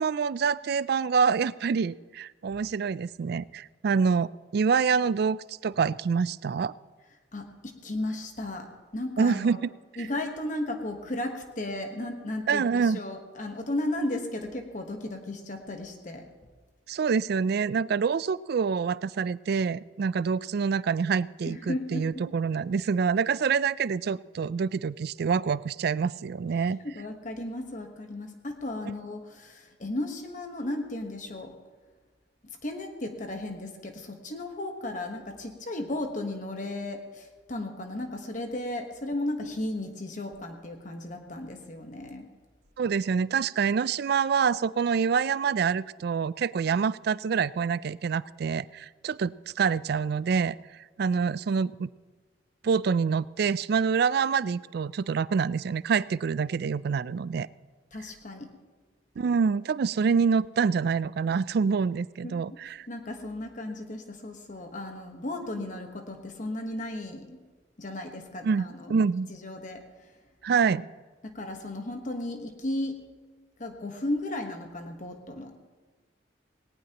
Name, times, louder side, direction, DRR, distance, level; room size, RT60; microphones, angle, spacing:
voice 1, 0.0-6.7 9.2-9.6 12.5-13.0 16.9-26.8 42.8-50.6 51.0-51.9 52.6-57.5 59.2-62.9 68.4-68.6 68.9-69.3 70.4-70.9, right 6 dB, 55° right, 19 dB, 0.3 m, -26 dB
voice 2, 7.3-9.6 10.0-16.3 21.5-22.2 26.6-31.5 32.6-42.3 57.9-58.5 62.2-62.6 62.9-67.4 67.8-69.0 69.3-69.8 70.7-70.8 71.2-73.0 73.6-75.5, left 1 dB, 40° left, 4 dB, 1.2 m, -35 dB
18.5 x 18.5 x 2.9 m, 1.3 s
head